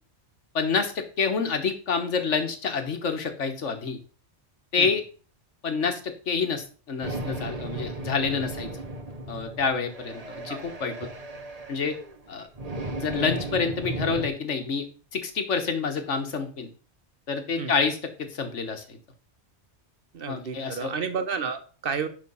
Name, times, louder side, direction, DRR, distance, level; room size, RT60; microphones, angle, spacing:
voice 1, 0.5-4.0 4.7-5.0 5.6-8.7 9.3-11.1 11.7-12.0 12.3-12.5 13.0-14.9 15.1-16.7 17.3-19.0 20.3-20.9, left 5 dB, 90° left, 7 dB, 1.7 m, -28 dB
sound 1, 7.0-14.3, right 2 dB, 35° right, 1.1 m, -35 dB
voice 2, 20.1-22.1, right 6 dB, 55° right, 9 dB, 1.2 m, -31 dB
10.5 x 3.8 x 5.5 m, 0.39 s
omnidirectional pair, 1.2 m